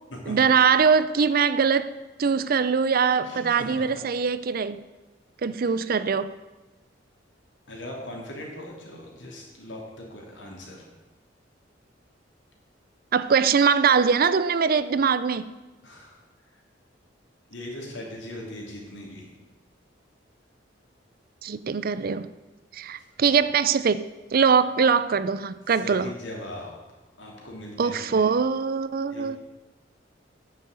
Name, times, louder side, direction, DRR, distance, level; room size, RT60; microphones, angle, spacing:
voice 1, 0.3-4.8 5.4-6.3 13.1-15.5 21.4-22.3 22.7-24.1 24.3-26.1 27.8-29.4, right 6 dB, 50° right, 0.5 m, -22 dB
voice 2, 3.2-3.9 5.7-5.8 7.7-10.8 15.8-16.2 16.5-16.6 17.5-19.3 23.2-23.3 25.7-26.7 27.2-28.3 29.1-29.4, left 1 dB, 75° left, 3.2 m, -40 dB
9.4 x 6.5 x 8.0 m
head